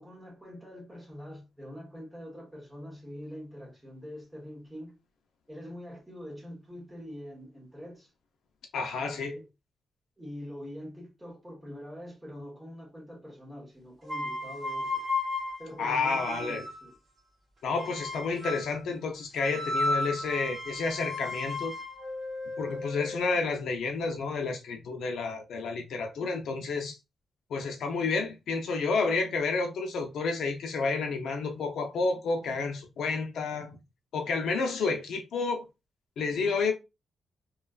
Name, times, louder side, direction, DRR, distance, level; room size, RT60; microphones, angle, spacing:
voice 1, 0.0-4.9 5.5-8.1 9.0-9.5 10.2-15.0 15.6-16.9, equal, 10° right, 1.1 m, -44 dB
voice 2, 8.7-9.3 15.8-16.6 17.6-21.7 22.6-27.0 27.5-33.8 34.1-35.7 36.2-36.7, left 4 dB, 75° left, 0.5 m, -30 dB
sound 1, 14.0-16.9 17.8-18.8 19.4-23.4, left 2 dB, 30° right, 1.4 m, -34 dB
3.0 x 2.3 x 2.3 m
wide cardioid pair, 160°, 0 cm